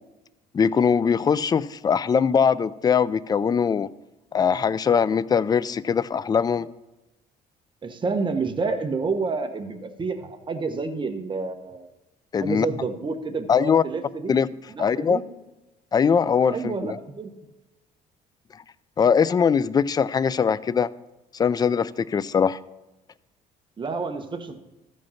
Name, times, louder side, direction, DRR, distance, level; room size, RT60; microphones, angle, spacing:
voice 1, 0.5-3.9 4.3-6.7 12.3-12.7 13.5-13.8 14.3-14.5 14.8-15.2 15.9-17.0 19.0-20.9 21.3-22.6, left 6 dB, 25° left, 18 dB, 0.3 m, -21 dB
voice 2, 7.8-11.9 12.4-14.4 14.7-15.2 16.5-17.3 23.8-24.6, right 4 dB, 30° right, 7 dB, 1.1 m, -29 dB
14.0 x 5.2 x 5.7 m, 1.0 s
cardioid pair, 110°, 17 cm